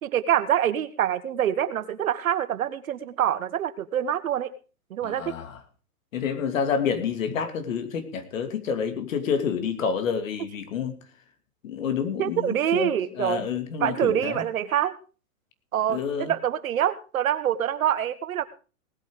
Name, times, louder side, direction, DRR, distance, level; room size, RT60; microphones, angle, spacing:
voice 1, 0.0-4.5 4.9-5.3 12.2-13.5 13.8-15.0 15.7-18.5, right 10 dB, 65° right, 12 dB, 1.6 m, -25 dB
voice 2, 5.0-5.6 6.1-11.0 11.6-14.4 15.9-16.3, left 6 dB, 60° left, 9 dB, 2.8 m, -28 dB
19.0 x 8.8 x 4.8 m, 0.35 s
hypercardioid pair, 160°, 44 cm